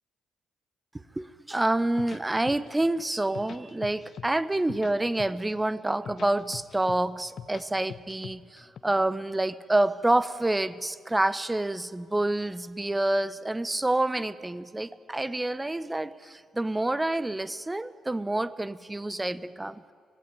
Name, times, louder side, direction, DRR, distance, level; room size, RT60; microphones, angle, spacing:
voice 1, 1.2-19.8, right 2 dB, 15° right, 16 dB, 1.1 m, -28 dB
sound 1, 1.8-2.8 3.1-4.3 4.5-5.5 5.9-7.6 7.9-8.8, left 7 dB, 50° left, 1.1 m, -42 dB
25.0 x 18.5 x 9.9 m, 2.1 s
figure-of-eight pair, 40°, 0 cm